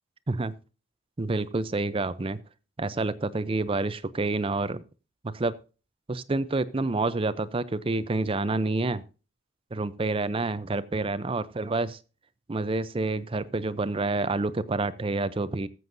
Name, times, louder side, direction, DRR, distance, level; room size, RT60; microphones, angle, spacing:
voice 1, 1.2-2.4 2.8-4.8 5.2-5.5 6.1-9.0 9.7-12.0 12.5-15.7, right 3 dB, 25° right, 16 dB, 0.5 m, -28 dB
19.0 x 7.7 x 2.6 m, 0.34 s
head